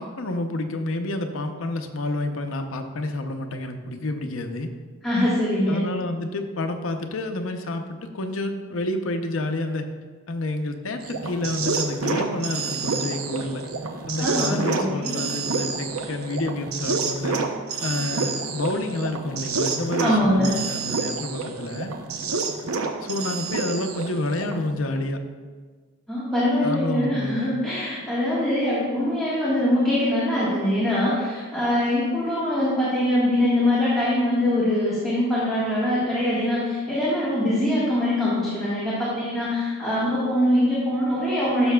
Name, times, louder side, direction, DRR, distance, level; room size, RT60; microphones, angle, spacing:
voice 1, 0.0-4.7 5.7-9.9 10.3-13.6 14.1-17.4 17.8-21.9 23.0-25.2 26.6-27.5, left 2 dB, 70° left, 5 dB, 0.7 m, -29 dB
voice 2, 5.0-5.8 14.2-15.2 20.0-20.5 26.1-41.7, left 1 dB, ahead, -11 dB, 1.5 m, -23 dB
sound 1, 11.0-24.7, right 4 dB, 90° right, 0.7 m, -28 dB
12.0 x 6.4 x 2.3 m, 1.5 s
head